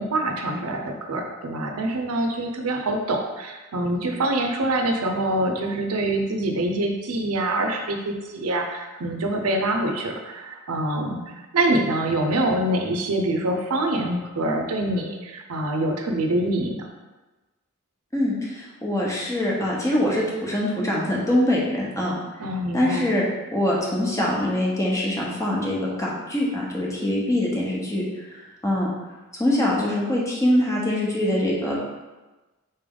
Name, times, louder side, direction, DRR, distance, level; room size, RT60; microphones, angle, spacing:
voice 1, 0.0-16.9 22.4-23.1, right 1 dB, 85° right, 3 dB, 0.6 m, -25 dB
voice 2, 18.1-22.1 22.7-23.2 23.5-28.0 28.3-28.9 29.4-31.8, left 1 dB, 15° left, -4 dB, 0.9 m, -23 dB
4.3 x 3.3 x 3.8 m, 1.2 s
head